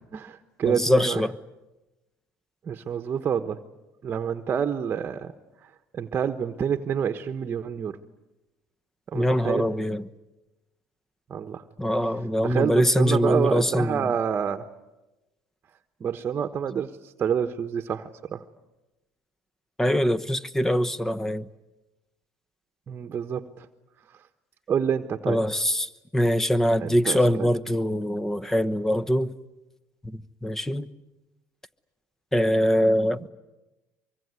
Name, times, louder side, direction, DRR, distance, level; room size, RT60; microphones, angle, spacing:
voice 1, 0.1-1.2 2.6-3.6 4.0-5.3 5.6-8.0 9.1-9.7 11.3-11.6 12.4-14.6 16.0-18.4 22.9-23.7 24.7-25.4 26.8-27.5, right 7 dB, 35° right, 1.2 m, -28 dB
voice 2, 0.7-1.4 9.1-10.0 11.8-14.0 19.8-21.4 25.3-29.3 30.0-30.9 32.3-33.3, equal, 10° left, 1.0 m, -23 dB
24.0 x 24.0 x 9.6 m
supercardioid pair, 105°, 5 cm